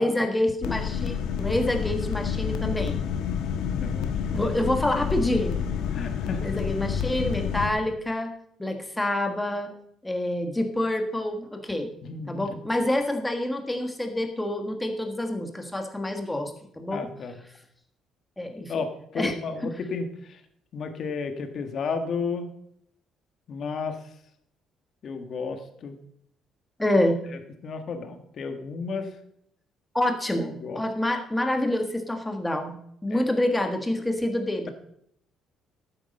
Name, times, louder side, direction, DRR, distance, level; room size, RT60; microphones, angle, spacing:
voice 1, 0.0-3.0 4.3-5.6 6.4-8.3 8.6-9.8 10.0-11.9 12.3-17.1 18.4-18.7 19.1-19.3 26.8-27.2 29.9-32.8 33.0-34.7, left 1 dB, 5° left, 4 dB, 1.5 m, -27 dB
sound 1, 0.6-7.7, left 7 dB, 80° left, 1.3 m, -29 dB
voice 2, 3.7-4.4 5.9-6.4 12.0-12.5 16.9-17.4 18.7-20.4 20.7-22.5 23.5-24.0 25.0-26.0 27.3-29.2 30.4-30.8 33.1-33.3, left 4 dB, 45° left, 7 dB, 1.5 m, -33 dB
12.0 x 9.4 x 5.3 m, 0.72 s
cardioid pair, 155°, 0 cm